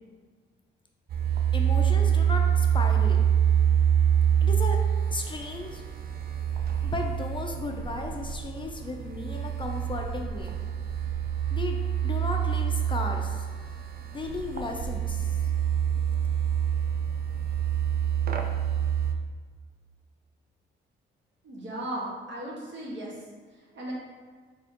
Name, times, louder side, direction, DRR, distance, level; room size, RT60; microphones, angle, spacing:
sound 1, 1.1-19.2, right 9 dB, 50° right, 0.4 m, -26 dB
voice 1, 1.5-3.2 4.4-4.8 5.1-5.8 6.8-10.5 11.5-11.8 12.0-13.4 14.1-15.3, left 3 dB, 25° left, 2 dB, 0.5 m, -35 dB
voice 2, 21.4-23.2 23.7-23.9, right 1 dB, 65° right, -5 dB, 1.3 m, -36 dB
4.2 x 3.6 x 2.8 m, 1.5 s
cardioid pair, 90°, 20 cm